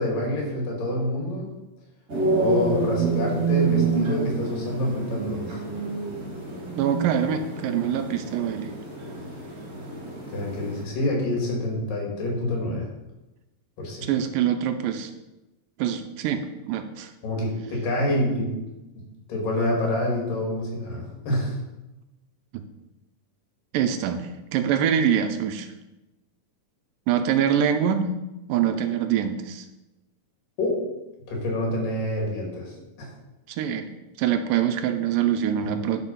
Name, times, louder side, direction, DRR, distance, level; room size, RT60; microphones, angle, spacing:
voice 1, 0.0-1.5 2.4-5.6 10.3-12.9 13.8-14.1 17.2-18.5 18.9-19.0 19.3-21.6 30.6-30.8 31.3-32.7 33.0-33.1, left 1 dB, 75° left, -1 dB, 4.0 m, -27 dB
sound 1, 2.1-10.8, right 4 dB, 35° right, 1.9 m, -28 dB
voice 2, 6.8-8.7 14.1-15.1 15.8-17.1 22.5-22.6 23.7-25.7 27.1-28.1 28.5-29.7 33.5-33.9 34.2-36.0, right 9 dB, 85° right, 7 dB, 2.2 m, -24 dB
11.0 x 5.0 x 5.5 m, 1.0 s
omnidirectional pair, 4.0 m